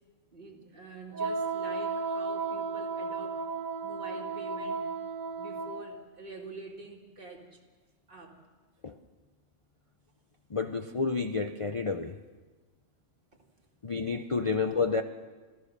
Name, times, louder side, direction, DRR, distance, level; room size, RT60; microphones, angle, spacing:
voice 1, 0.3-3.4 3.8-4.9 5.4-7.6 8.1-8.4 13.3-13.4 14.0-14.2, right 2 dB, 40° right, -1 dB, 2.8 m, -46 dB
Wind instrument woodwind instrument, 1.1-5.9, right 4 dB, 90° right, 1.7 m, -34 dB
voice 2, 10.5-12.2 13.8-15.0, left 4 dB, 35° left, 6 dB, 0.5 m, -30 dB
26.5 x 15.5 x 6.7 m, 1.3 s
omnidirectional pair, 1.4 m